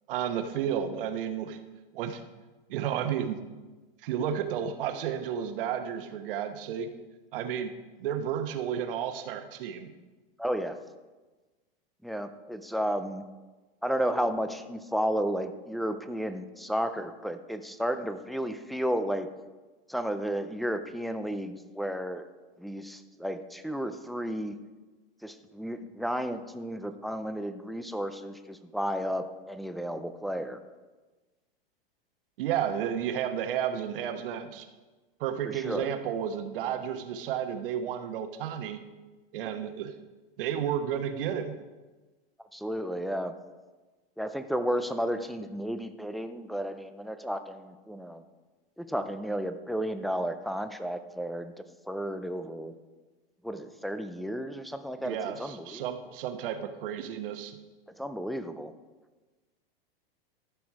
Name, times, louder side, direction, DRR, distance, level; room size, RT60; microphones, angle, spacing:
voice 1, 0.1-1.6 1.9-2.2 2.7-3.4 4.0-6.9 7.3-7.7 8.0-9.9 32.4-34.7 35.2-38.8 39.3-39.9 40.4-41.6 55.0-57.6, right 9 dB, 65° right, 7 dB, 1.2 m, -32 dB
voice 2, 10.4-10.8 12.0-13.2 13.8-19.3 19.9-22.3 22.6-24.6 25.2-30.6 35.5-35.9 42.5-43.3 44.2-48.2 48.8-52.7 53.4-55.8 57.9-58.7, equal, ahead, 8 dB, 0.3 m, -33 dB
13.5 x 6.0 x 4.7 m, 1.2 s
hypercardioid pair, 120°, 30 cm